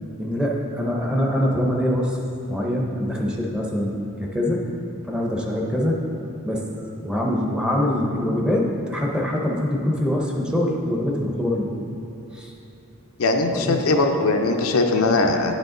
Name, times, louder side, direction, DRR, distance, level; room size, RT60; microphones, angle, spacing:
voice 1, 0.2-2.2 2.5-4.6 5.1-6.0 6.4-6.7 7.0-11.7 12.3-12.5 13.6-13.8, left 1 dB, 5° right, -1 dB, 0.7 m, -24 dB
voice 2, 13.2-15.5, left 2 dB, 65° left, 3 dB, 0.6 m, -20 dB
10.0 x 5.2 x 3.8 m, 2.8 s
head